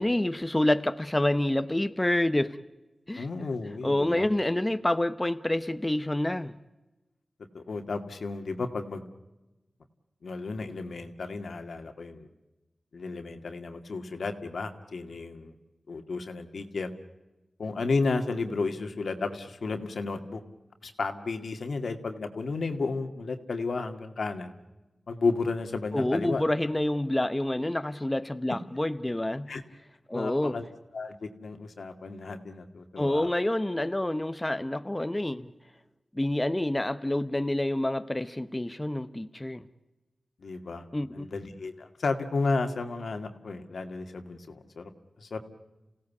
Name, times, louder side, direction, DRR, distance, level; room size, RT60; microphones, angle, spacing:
voice 1, 0.0-2.6 3.1-3.3 3.8-6.6 25.9-29.5 30.1-30.6 33.0-35.5 36.1-39.6 40.9-41.3, left 1 dB, 20° left, 11 dB, 0.9 m, -28 dB
voice 2, 3.2-4.3 7.5-9.0 10.2-12.3 12.9-15.5 15.9-16.9 17.6-20.4 20.8-24.5 25.1-26.4 29.5-29.6 30.1-30.6 30.9-33.3 40.4-40.9 41.1-44.9 45.2-45.4, left 3 dB, 80° left, 7 dB, 2.1 m, -32 dB
28.5 x 17.0 x 8.4 m, 1.1 s
wide cardioid pair, 65°, 0 cm